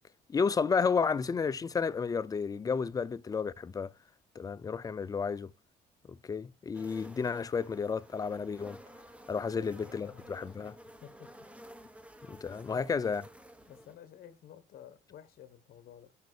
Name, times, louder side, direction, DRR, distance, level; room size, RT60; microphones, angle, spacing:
voice 1, 0.3-3.9 4.4-5.5 6.1-8.8 9.3-10.8 12.3-13.2, left 5 dB, 20° left, 0.4 m, -32 dB
sound 1, 6.7-13.9, equal, 5° right, 1.0 m, -53 dB
voice 2, 9.5-10.3 11.0-11.3 12.5-13.0 13.7-16.1, left 10 dB, 65° left, 1.2 m, -52 dB
10.5 x 5.2 x 2.4 m
cardioid pair, 110°, 17 cm